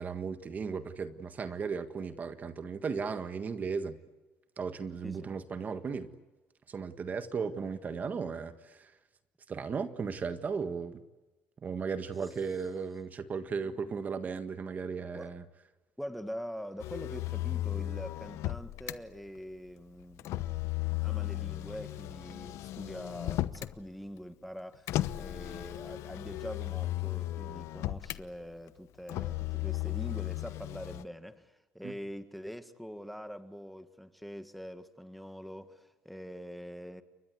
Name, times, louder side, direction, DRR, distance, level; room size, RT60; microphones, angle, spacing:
voice 1, 0.0-4.0 4.6-6.1 6.7-8.9 9.5-11.0 11.6-15.4 31.8-31.9, right 5 dB, 35° right, 1.6 m, -36 dB
voice 2, 16.0-20.3 21.0-37.0, equal, ahead, 1.8 m, -44 dB
Motor vehicle (road), 16.8-19.0 20.2-23.8 24.9-28.2 29.1-31.0, left 16 dB, 75° left, 1.0 m, -35 dB
29.5 x 23.0 x 8.3 m
cardioid pair, 120°, 5 cm